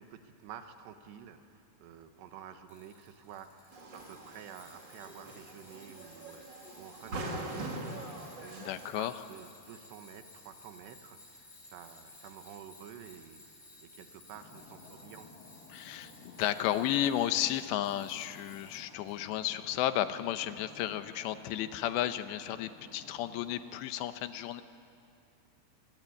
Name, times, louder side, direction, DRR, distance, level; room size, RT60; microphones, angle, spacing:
voice 1, 0.0-15.3, right 8 dB, 75° right, 8 dB, 3.4 m, -50 dB
Tools, 2.7-19.2, left 2 dB, 15° left, 3.0 m, -57 dB
sound 1, 3.7-8.9, right 2 dB, 35° right, 2.1 m, -42 dB
voice 2, 8.6-9.2 15.7-24.6, left 12 dB, 85° left, 10 dB, 3.1 m, -33 dB
sound 2, 14.3-23.7, left 4 dB, 55° left, 3.8 m, -55 dB
27.0 x 21.0 x 9.7 m, 2.5 s
omnidirectional pair, 5.0 m